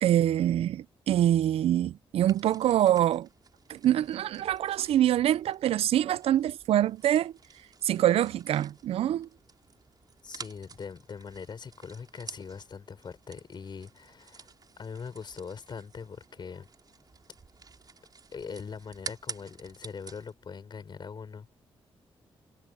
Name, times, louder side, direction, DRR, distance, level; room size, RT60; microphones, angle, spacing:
voice 1, 0.0-3.3 3.7-7.3 7.8-9.3, right 12 dB, 80° right, 0.5 m, -25 dB
sound 1, 2.3-20.3, right 5 dB, 40° right, 5.5 m, -49 dB
voice 2, 10.2-16.7 18.3-21.5, left 6 dB, 50° left, 5.5 m, -42 dB
cardioid pair, 80°, 10 cm